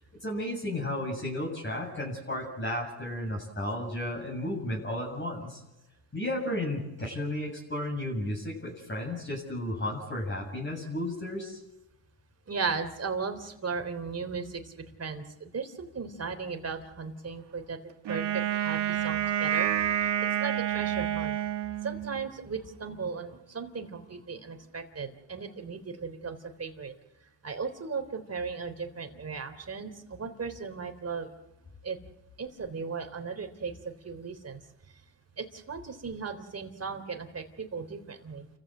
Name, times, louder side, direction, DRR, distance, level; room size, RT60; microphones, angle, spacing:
voice 1, 0.2-5.6 6.1-11.6, left 1 dB, 25° left, -2 dB, 7.3 m, -33 dB
voice 2, 12.5-17.8 18.1-19.7 20.0-20.1 20.4-21.3 21.8-26.9 27.4-31.3 31.8-32.0 32.4-34.6 35.4-38.5, right 5 dB, 30° right, 8 dB, 3.5 m, -36 dB
Wind instrument woodwind instrument, 18.0-22.3, right 11 dB, 55° right, 2.3 m, -29 dB
30.0 x 15.0 x 7.9 m, 0.92 s
cardioid pair, 95°, 49 cm